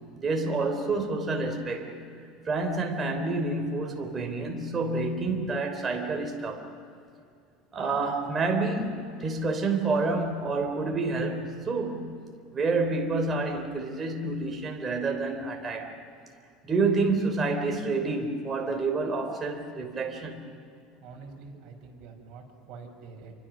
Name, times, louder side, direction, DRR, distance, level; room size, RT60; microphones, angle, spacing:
voice 1, 0.2-2.0 2.5-6.7 7.7-12.2 12.5-15.9 16.6-20.5, right 3 dB, 20° right, 3.5 m, -28 dB
voice 2, 21.0-23.3, right 4 dB, 45° right, 6.2 m, -46 dB
28.5 x 24.5 x 6.3 m
cardioid pair, 150°, 0 cm